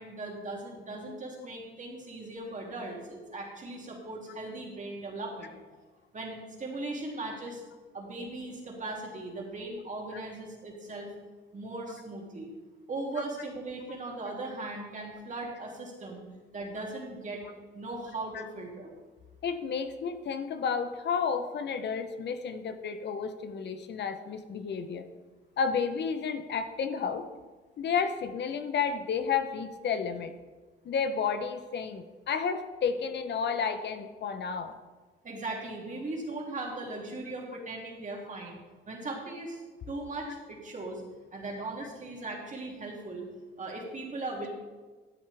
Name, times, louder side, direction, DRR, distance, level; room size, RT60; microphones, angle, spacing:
voice 1, 0.0-5.5 6.1-7.6 7.9-11.1 11.5-12.5 12.9-16.2 16.5-17.4 17.7-18.9 35.2-38.6 38.9-41.0 41.3-43.2 43.6-44.5, right 2 dB, 40° right, -1 dB, 2.7 m, -38 dB
voice 2, 19.4-25.1 25.6-27.3 27.8-30.3 30.8-34.8, left 6 dB, 60° left, 9 dB, 0.9 m, -31 dB
13.0 x 8.6 x 3.5 m, 1.3 s
cardioid pair, 90°, 20 cm